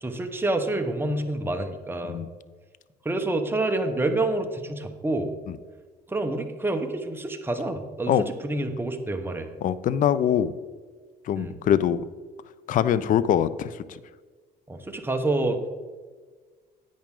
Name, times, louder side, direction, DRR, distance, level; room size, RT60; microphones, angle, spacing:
voice 1, 0.0-2.2 3.0-5.3 6.1-9.5 11.3-11.5 14.7-15.7, right 2 dB, 15° right, 5 dB, 1.1 m, -28 dB
voice 2, 9.6-10.5 11.3-12.0 12.7-14.0, left 9 dB, 50° left, 16 dB, 0.5 m, -23 dB
10.5 x 8.6 x 3.8 m, 1.4 s
cardioid pair, 110°, 17 cm